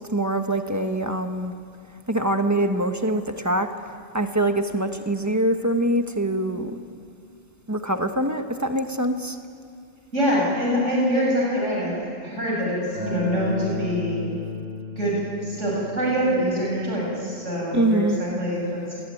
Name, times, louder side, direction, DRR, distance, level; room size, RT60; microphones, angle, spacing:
voice 1, 0.0-1.5 2.1-3.7 4.1-6.8 7.7-9.4 17.7-18.2, right 1 dB, 15° right, 6 dB, 1.2 m, -24 dB
voice 2, 10.1-11.9 12.2-14.2 15.0-18.8, equal, 70° right, -4 dB, 7.5 m, -24 dB
Acoustic guitar, 12.9-18.1, left 2 dB, 90° right, 6.2 m, -34 dB
27.0 x 19.0 x 9.3 m, 2.4 s
omnidirectional pair, 1.3 m